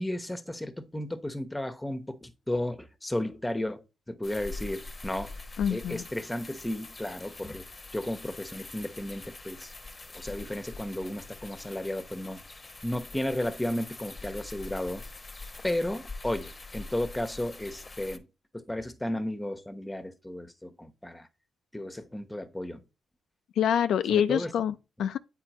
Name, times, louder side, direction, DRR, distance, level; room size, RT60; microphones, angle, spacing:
voice 1, 0.0-5.3 5.7-7.6 7.9-9.7 10.1-12.4 12.8-15.0 15.6-18.3 18.5-21.3 21.7-22.8 24.1-24.5, left 1 dB, 10° left, 1.0 m, -34 dB
sound 1, 4.2-18.2, left 3 dB, 30° left, 0.9 m, -44 dB
voice 2, 5.6-6.0 23.6-25.2, left 9 dB, 70° left, 0.3 m, -26 dB
8.8 x 4.0 x 3.0 m
hypercardioid pair, 45°, 0 cm